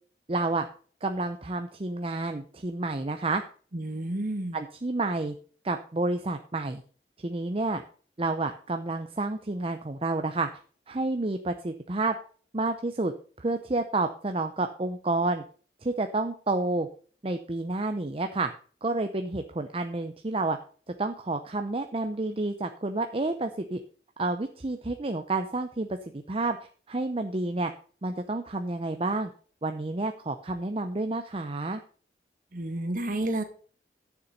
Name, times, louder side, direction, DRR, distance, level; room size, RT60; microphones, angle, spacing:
voice 1, 0.3-0.7 1.0-3.4 4.5-5.3 5.6-6.8 7.2-7.8 8.2-10.5 10.9-12.2 12.5-15.4 15.8-16.9 17.2-18.5 18.8-20.6 21.0-23.8 24.2-25.9 26.1-27.7 28.0-29.3 29.6-31.8, right 2 dB, 30° right, 6 dB, 0.6 m, -29 dB
voice 2, 3.7-4.6 32.5-33.4, right 1 dB, 50° right, 6 dB, 1.7 m, -30 dB
9.6 x 7.0 x 5.4 m, 0.43 s
head